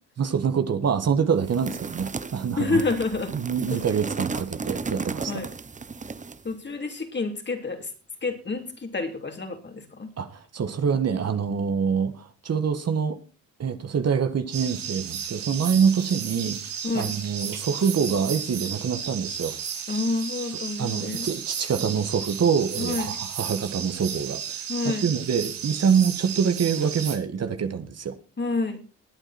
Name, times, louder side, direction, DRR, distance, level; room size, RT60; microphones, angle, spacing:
voice 1, 0.2-2.8 3.3-5.3 10.2-13.2 13.6-16.6 16.9-19.5 20.8-24.4 25.0-28.1, right 6 dB, 45° right, 8 dB, 1.8 m, -25 dB
sound 1, 1.4-6.5, right 4 dB, 20° right, 0.9 m, -35 dB
voice 2, 2.6-3.4 3.7-3.8 5.3-5.5 6.4-7.9 8.2-10.1 16.8-17.1 19.9-21.3 22.8-23.1 24.7-25.1 28.4-28.8, left 3 dB, 30° left, 5 dB, 3.3 m, -28 dB
sound 2, 14.5-27.2, right 8 dB, 80° right, 3.5 m, -34 dB
19.5 x 9.1 x 4.4 m, 0.36 s
cardioid pair, 85°, 34 cm